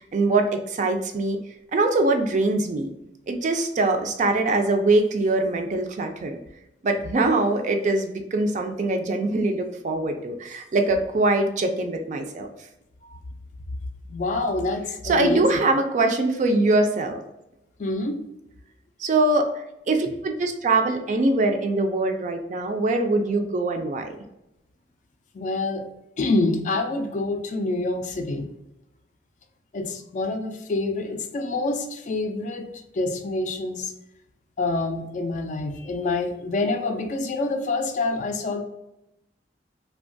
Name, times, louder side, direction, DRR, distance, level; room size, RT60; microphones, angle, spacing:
voice 1, 0.0-1.4 1.7-2.9 3.3-6.4 6.8-12.5 15.0-17.2 19.0-19.5 19.9-24.1, right 2 dB, 45° right, 5 dB, 0.3 m, -23 dB
voice 2, 14.1-15.5 17.8-18.2 25.3-25.9 26.2-28.5 29.7-32.7 32.9-33.9 34.6-38.6, left 2 dB, 45° left, 6 dB, 0.3 m, -26 dB
2.8 x 2.2 x 2.5 m, 0.88 s
head